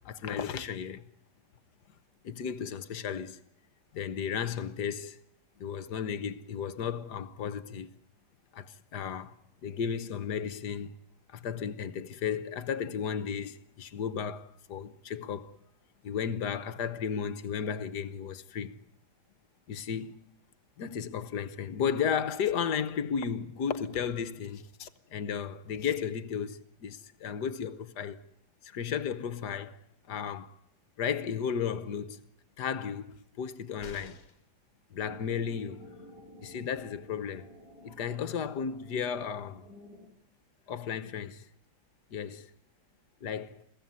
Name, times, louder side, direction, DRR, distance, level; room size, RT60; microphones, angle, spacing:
voice 1, 0.0-1.1 2.2-3.4 3.9-5.2 5.6-7.9 8.5-9.3 9.6-10.9 11.3-15.6 16.0-18.8 19.7-20.2 20.8-28.2 28.6-29.8 30.1-30.6 31.0-32.2 32.6-34.2 34.9-35.8 36.4-37.5 37.8-39.7 40.7-41.5 42.1-42.5 43.2-43.6, left 7 dB, 60° left, 1.5 m, -34 dB
sound 1, 33.8-34.5 36.5-36.6 36.9-37.0, left 4 dB, 35° left, 1.8 m, -49 dB
sound 2, 35.0-40.1, left 1 dB, 65° right, 4.9 m, -51 dB
22.0 x 16.0 x 9.6 m
omnidirectional pair, 2.1 m